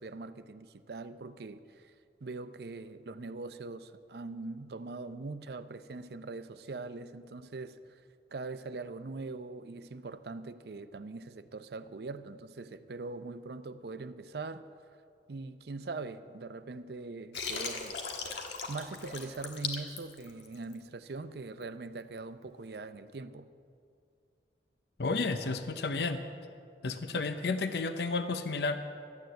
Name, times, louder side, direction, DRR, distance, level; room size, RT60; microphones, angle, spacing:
voice 1, 0.0-1.9 2.2-8.0 8.3-14.7 15.3-18.0 18.7-23.5, right 3 dB, 65° right, 12 dB, 0.5 m, -42 dB
Water, 17.3-20.8, left 5 dB, 80° left, 1.4 m, -38 dB
voice 2, 25.0-26.2 26.8-28.8, left 3 dB, 65° left, 8 dB, 0.6 m, -32 dB
13.0 x 9.2 x 7.7 m, 2.3 s
head